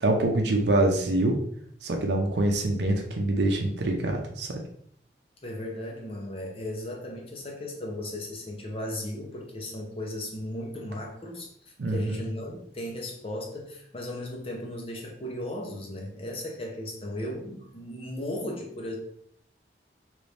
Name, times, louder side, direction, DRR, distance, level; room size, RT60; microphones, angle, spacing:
voice 1, 0.0-1.4 1.8-4.6 11.8-12.2, right 2 dB, 75° right, 2 dB, 0.5 m, -25 dB
voice 2, 5.4-19.0, left 1 dB, 30° left, 0 dB, 0.8 m, -36 dB
3.0 x 2.6 x 3.3 m, 0.67 s
head